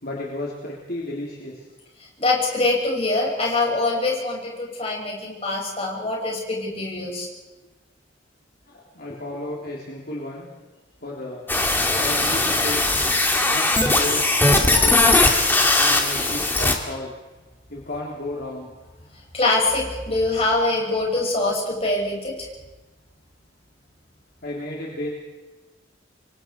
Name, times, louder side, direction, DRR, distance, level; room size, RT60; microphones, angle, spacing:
voice 1, 0.0-1.7 8.7-10.5 11.0-11.4 12.0-12.9 13.4-14.2 14.8-15.2 15.8-17.1 17.7-18.7 24.4-25.1, left 1 dB, 55° left, -4 dB, 3.5 m, -33 dB
voice 2, 2.2-7.3 19.3-22.3, left 2 dB, 30° left, -2 dB, 6.5 m, -24 dB
sound 1, 11.5-16.7, left 2 dB, 10° left, 2.1 m, -19 dB
27.0 x 24.0 x 4.7 m, 1.2 s
head